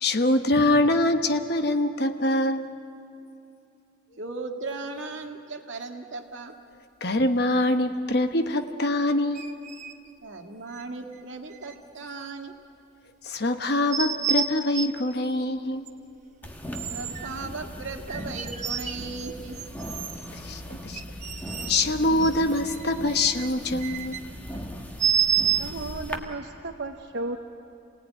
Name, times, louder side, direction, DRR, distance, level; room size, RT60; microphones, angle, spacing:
voice 1, 0.0-2.7 7.0-9.5 13.2-15.9 20.4-21.0 21.7-24.2, left 1 dB, 55° left, 7 dB, 1.1 m, -24 dB
voice 2, 4.2-6.6 10.2-12.5 16.8-19.6, right 3 dB, 80° right, 3 dB, 1.9 m, -37 dB
sound 1, 9.4-9.9 10.7-10.8 11.6-11.7 13.9-15.1 15.9-16.0 16.7-17.3 18.0-19.3 19.6-20.3 20.9-21.9 22.2-24.2 25.0-25.6, right 7 dB, 40° right, 1.1 m, -29 dB
sound 2, 16.4-26.2, equal, 10° left, 1.4 m, -38 dB
voice 3, 25.6-27.4, right 2 dB, 65° right, 4 dB, 0.9 m, -34 dB
28.0 x 17.5 x 9.3 m, 2.7 s
head